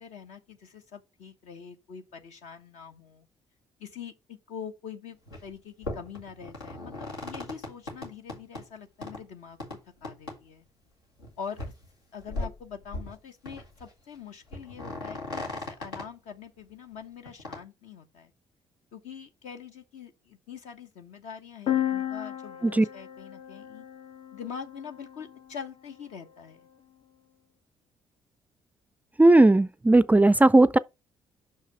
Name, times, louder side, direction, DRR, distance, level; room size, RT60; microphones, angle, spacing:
voice 1, 0.0-3.3 3.8-10.6 11.4-11.6 12.1-18.3 18.9-23.8 24.3-26.7, left 7 dB, 65° left, 1.2 m, -44 dB
sound 1, 5.3-5.5 5.8-8.6 9.0-9.2 9.6-9.8 10.0-10.4 10.7-10.8 11.2-11.3 11.5-11.9 12.2-13.2 13.5-13.9 14.1-14.2 14.5-16.0 17.3-17.6, left 2 dB, 85° left, 2.0 m, -37 dB
sound 2, 21.7-25.4, left 11 dB, 45° left, 0.6 m, -33 dB
voice 2, 29.2-30.8, right 2 dB, 10° right, 0.4 m, -17 dB
6.0 x 5.6 x 4.8 m
figure-of-eight pair, 45°, 13 cm